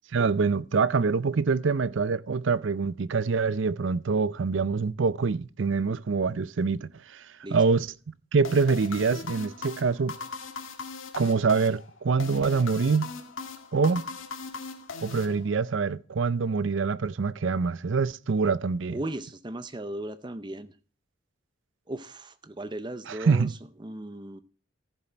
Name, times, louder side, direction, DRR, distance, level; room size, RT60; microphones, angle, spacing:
voice 1, 0.1-10.2 11.2-13.1 13.7-14.0 15.0-19.0 23.1-23.5, right 4 dB, 70° right, 0.5 m, -25 dB
sound 1, 8.4-15.8, left 4 dB, 85° left, 1.8 m, -39 dB
voice 2, 18.9-20.7 21.9-23.5 23.8-24.4, right 1 dB, 25° right, 0.6 m, -36 dB
14.5 x 7.5 x 4.4 m
head